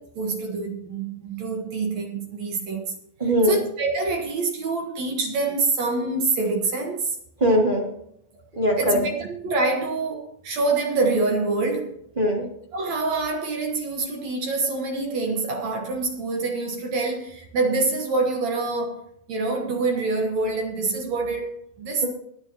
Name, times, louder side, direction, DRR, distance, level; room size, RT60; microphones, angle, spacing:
voice 1, 0.2-2.9 3.5-7.2 8.8-12.0 12.7-22.1, right 3 dB, 60° right, 2.2 m, -26 dB
voice 2, 3.2-3.6 7.4-7.9 8.6-9.0 12.2-12.4, equal, 15° right, 2.0 m, -20 dB
22.5 x 8.8 x 2.9 m
omnidirectional pair, 4.3 m